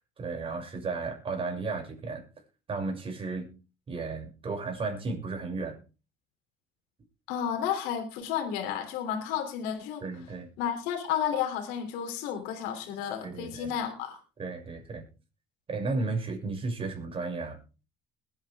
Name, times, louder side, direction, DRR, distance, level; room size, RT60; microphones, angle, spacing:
voice 1, 0.2-2.2 2.7-3.5 3.9-5.8 10.0-10.5 13.2-13.7 14.4-15.1 15.7-17.6, right 3 dB, 35° right, 2 dB, 6.5 m, -34 dB
voice 2, 7.3-10.0 10.6-14.2, left 9 dB, 90° left, 4 dB, 3.1 m, -32 dB
21.0 x 9.4 x 3.5 m, 0.33 s
cardioid pair, 105°, 16 cm